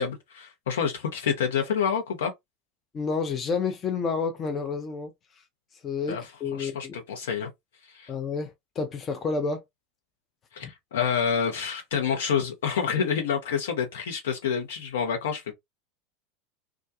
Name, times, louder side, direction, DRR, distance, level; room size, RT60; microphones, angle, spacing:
voice 1, 0.0-2.3 6.1-6.2 6.5-7.5 7.9-8.1 10.5-15.4, left 7 dB, 70° left, 0.9 m, -28 dB
voice 2, 2.9-5.1 5.8-6.9 8.1-9.6 10.6-10.7, left 5 dB, 30° left, 0.5 m, -30 dB
2.3 x 2.2 x 2.7 m
figure-of-eight pair, 80°, 0 cm